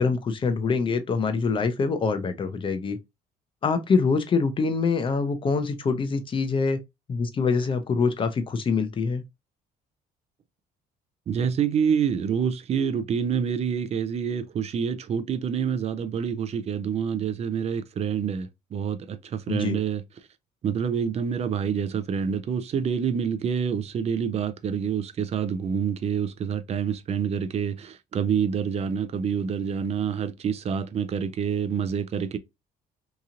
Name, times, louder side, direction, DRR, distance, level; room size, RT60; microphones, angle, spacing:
voice 1, 0.0-3.0 3.6-6.8 7.1-9.2 19.5-19.8, left 4 dB, 30° left, 0.5 m, -25 dB
voice 2, 11.3-20.0 20.6-32.4, right 7 dB, 40° right, 0.4 m, -27 dB
2.9 x 2.7 x 2.4 m
cardioid pair, 110°, 17 cm